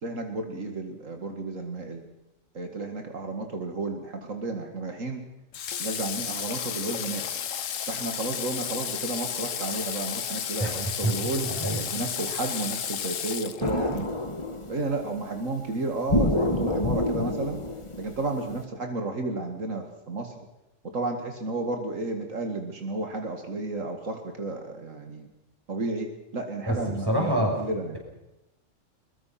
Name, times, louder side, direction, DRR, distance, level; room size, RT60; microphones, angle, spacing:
voice 1, 0.0-2.1 2.5-5.2 5.8-7.3 7.9-11.5 11.9-14.1 14.7-17.6 18.0-20.5 20.8-25.3 25.7-28.0, right 2 dB, 75° right, 4 dB, 2.4 m, -32 dB
Water / Water tap faucet, 5.5-14.1, left 8 dB, 75° left, 1.3 m, -33 dB
voice 2, 10.6-11.1 11.4-11.8 26.7-27.6, right 1 dB, 15° right, 0 dB, 6.6 m, -27 dB
sound 1, 13.6-15.1 16.1-18.5, left 1 dB, 25° left, 1.8 m, -27 dB
22.0 x 21.5 x 5.9 m, 0.93 s
omnidirectional pair, 1.3 m